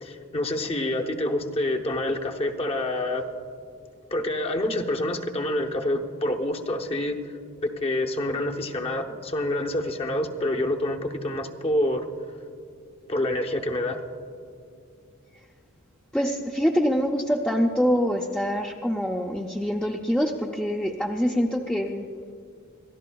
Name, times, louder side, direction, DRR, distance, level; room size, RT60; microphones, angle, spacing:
voice 1, 0.0-3.2 4.1-7.3 7.6-12.1 13.1-14.0, left 1 dB, 25° left, 3 dB, 0.8 m, -27 dB
voice 2, 16.1-22.1, equal, 5° left, 0 dB, 0.4 m, -25 dB
26.0 x 13.0 x 2.3 m, 2.3 s
head